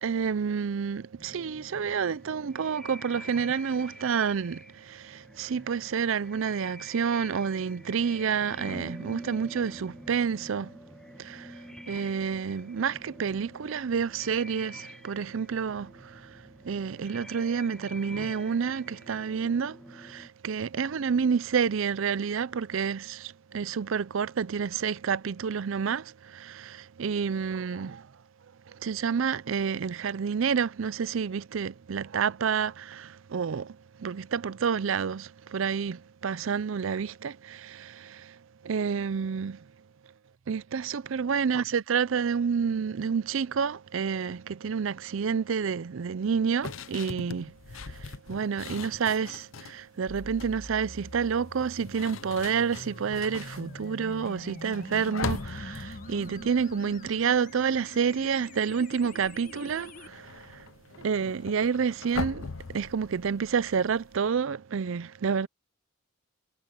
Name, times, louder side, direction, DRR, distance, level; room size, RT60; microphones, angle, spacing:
voice 1, 0.0-10.7 11.2-11.5 11.8-16.4 16.6-28.0 28.8-38.3 38.6-39.6 40.5-60.6 61.0-65.5, right 6 dB, 70° right, 0.5 m, -29 dB
sound 1, 1.2-20.3, equal, 5° left, 1.1 m, -47 dB
sound 2, 46.6-49.8 50.2-50.6 51.5-57.8 58.1-58.4 58.7-64.2, left 4 dB, 75° left, 0.8 m, -41 dB
sound 3, 50.1-60.1, left 1 dB, 40° left, 1.8 m, -45 dB
head